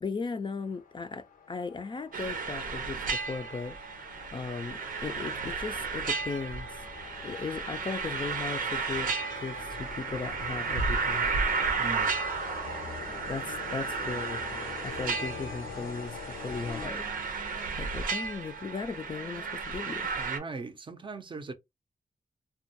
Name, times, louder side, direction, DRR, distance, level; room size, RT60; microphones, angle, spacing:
voice 1, 0.0-4.0 4.3-6.8 7.2-11.3 13.3-14.4 14.8-17.0 17.5-20.1, left 4 dB, 35° left, 0.3 m, -37 dB
sound 1, 0.6-17.4, left 6 dB, 85° left, 0.6 m, -45 dB
sound 2, 2.1-20.4, right 4 dB, 80° right, 0.6 m, -33 dB
voice 2, 11.8-12.1 20.2-21.5, right 4 dB, 35° right, 0.5 m, -39 dB
2.2 x 2.2 x 2.7 m
cardioid pair, 75°, 14 cm